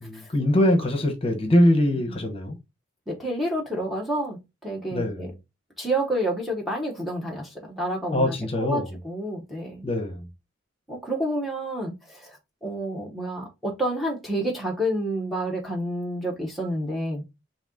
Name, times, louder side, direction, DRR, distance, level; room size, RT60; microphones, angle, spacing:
voice 1, 0.0-2.6 4.9-5.2 8.1-8.9 9.8-10.2, left 1 dB, 30° left, 1.0 m, -22 dB
voice 2, 3.1-5.3 5.8-9.8 10.9-17.2, right 1 dB, ahead, 0.9 m, -29 dB
4.1 x 2.8 x 3.6 m
head